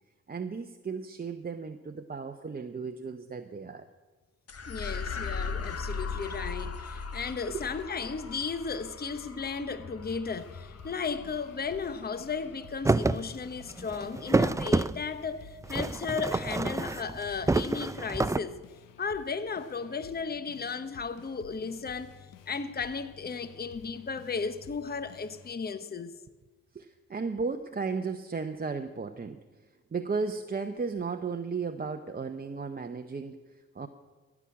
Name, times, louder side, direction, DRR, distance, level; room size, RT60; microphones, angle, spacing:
voice 1, 0.3-3.9 7.5-7.6 26.7-33.9, right 4 dB, 30° right, 0.7 m, -35 dB
sound 1, 4.5-13.1, left 5 dB, 45° left, 1.2 m, -39 dB
voice 2, 4.7-18.6 19.0-22.1 22.5-26.2, left 5 dB, 30° left, 0.8 m, -35 dB
sound 2, 10.2-25.6, left 8 dB, 75° left, 0.9 m, -53 dB
sound 3, 12.8-13.2 13.6-15.0 15.6-17.2 17.4-18.4, right 3 dB, 10° right, 0.3 m, -27 dB
15.0 x 6.1 x 8.5 m
cardioid pair, 55°, 33 cm